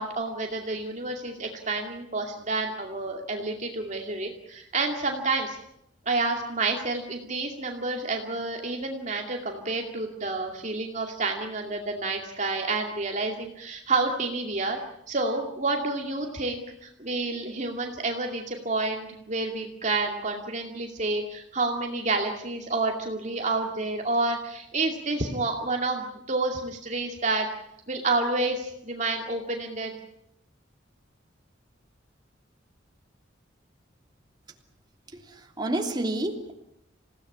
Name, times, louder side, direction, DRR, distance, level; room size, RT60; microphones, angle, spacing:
voice 1, 0.0-5.6 6.1-14.8 15.1-27.5 27.9-29.9, right 3 dB, 40° right, 2 dB, 2.5 m, -29 dB
voice 2, 35.1-36.5, right 1 dB, 25° right, 3 dB, 3.1 m, -30 dB
28.0 x 17.0 x 9.7 m, 0.79 s
head